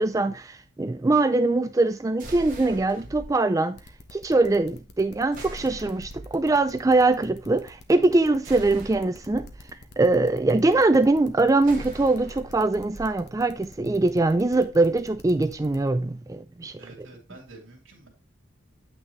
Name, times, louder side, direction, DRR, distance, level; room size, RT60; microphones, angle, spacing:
voice 1, 0.0-3.8 4.1-9.5 10.0-16.8, right 2 dB, 15° right, 0.3 m, -22 dB
sound 1, 2.2-3.3 5.3-6.4 8.4-9.5 11.6-13.1, right 1 dB, 40° right, 2.2 m, -41 dB
sound 2, 3.8-15.9, left 2 dB, 50° left, 1.1 m, -49 dB
voice 2, 16.8-18.1, right 2 dB, 75° right, 2.9 m, -47 dB
8.9 x 6.0 x 3.1 m
head